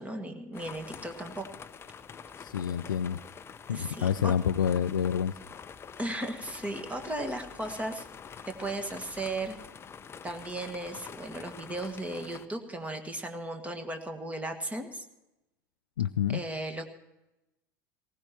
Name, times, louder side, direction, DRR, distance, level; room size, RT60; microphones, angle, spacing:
voice 1, 0.0-1.4 3.7-4.3 6.0-8.0 8.4-9.6 10.2-15.1 16.3-16.9, right 2 dB, 15° right, 6 dB, 1.7 m, -36 dB
sound 1, 0.5-12.5, left 6 dB, 25° left, 0.7 m, -46 dB
voice 2, 2.4-3.2 3.7-5.3 16.0-16.4, left 8 dB, 75° left, 9 dB, 0.4 m, -28 dB
19.5 x 17.5 x 3.0 m, 0.95 s
figure-of-eight pair, 75°, 11 cm